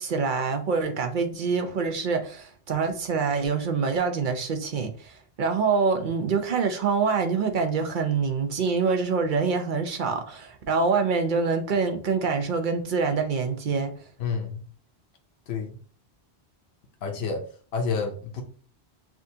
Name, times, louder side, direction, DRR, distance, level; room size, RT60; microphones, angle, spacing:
voice 1, 0.0-13.9, right 5 dB, 55° right, 0.7 m, -25 dB
voice 2, 14.2-14.6 15.5-15.7 17.0-18.4, left 5 dB, 70° left, 0.9 m, -30 dB
6.0 x 2.5 x 2.7 m
omnidirectional pair, 1.1 m